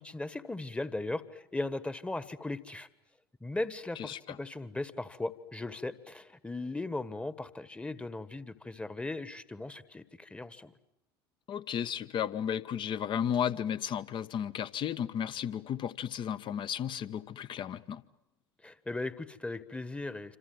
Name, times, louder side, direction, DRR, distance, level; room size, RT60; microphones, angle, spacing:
voice 1, 0.0-2.9 3.4-10.7 18.6-20.4, left 2 dB, 10° left, 15 dB, 1.4 m, -38 dB
voice 2, 4.0-4.4 11.5-18.0, left 9 dB, 40° left, 13 dB, 1.2 m, -34 dB
27.0 x 26.5 x 7.9 m, 0.87 s
figure-of-eight pair, 70°, 13 cm